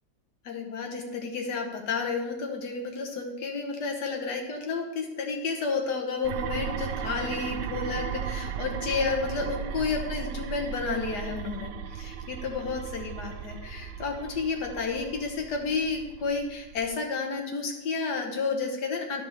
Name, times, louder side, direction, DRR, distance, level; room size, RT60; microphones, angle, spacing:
voice 1, 0.4-19.3, left 4 dB, 70° left, 2 dB, 1.7 m, -31 dB
sound 1, 6.2-17.0, right 8 dB, 85° right, 1.2 m, -36 dB
12.5 x 5.1 x 3.3 m, 1.0 s
omnidirectional pair, 1.9 m